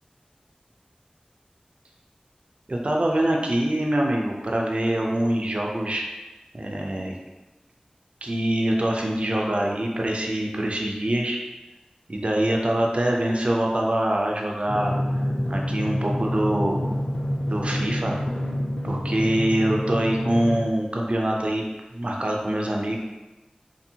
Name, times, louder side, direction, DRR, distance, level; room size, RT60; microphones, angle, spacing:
voice 1, 2.7-6.0 6.5-7.2 8.2-11.4 12.1-15.0 15.5-16.8 17.4-18.2 18.8-21.6 21.9-23.0, right 1 dB, 50° right, -1 dB, 0.4 m, -24 dB
Drum, 14.7-20.7, equal, 40° left, 0.3 m, -27 dB
2.7 x 2.6 x 2.7 m, 1.1 s
wide cardioid pair, 45°, 3 cm